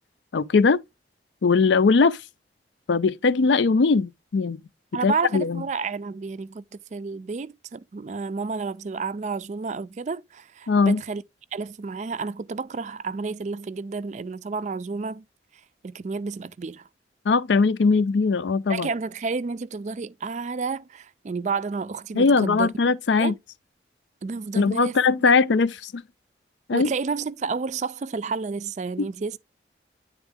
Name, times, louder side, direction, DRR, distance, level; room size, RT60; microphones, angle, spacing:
voice 1, 0.3-0.8 1.4-2.2 2.9-4.6 5.0-5.6 10.7-11.0 17.3-18.9 22.1-23.3 24.5-26.0 26.7-26.9 29.0-29.1, left 4 dB, 85° left, 0.5 m, -20 dB
voice 2, 4.9-11.2 11.5-15.2 15.8-16.8 18.7-22.9 23.2-23.4 24.2-25.3 26.7-29.4, right 4 dB, 40° right, 0.4 m, -31 dB
9.7 x 3.6 x 3.5 m
head